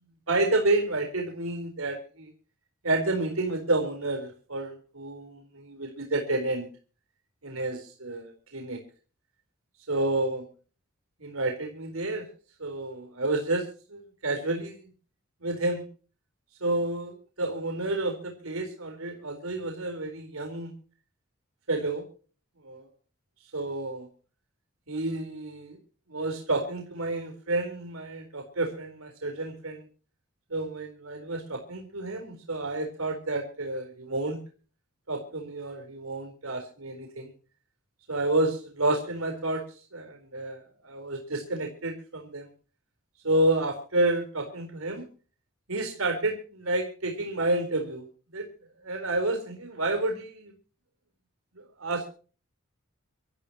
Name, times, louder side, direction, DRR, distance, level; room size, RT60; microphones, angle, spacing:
voice 1, 0.3-2.3 2.8-6.6 7.4-8.8 9.9-10.5 11.2-12.3 12.6-14.8 15.4-15.8 16.6-20.7 21.7-22.1 22.6-22.8 23.5-24.1 24.9-25.8 26.1-29.8 30.5-34.4 35.1-37.3 38.1-39.6 39.9-42.5 43.2-45.1 45.7-48.1 48.3-48.5 48.8-50.5 51.6-52.1, right 2 dB, 80° right, 3 dB, 4.2 m, -30 dB
26.0 x 14.0 x 2.9 m, 0.39 s
head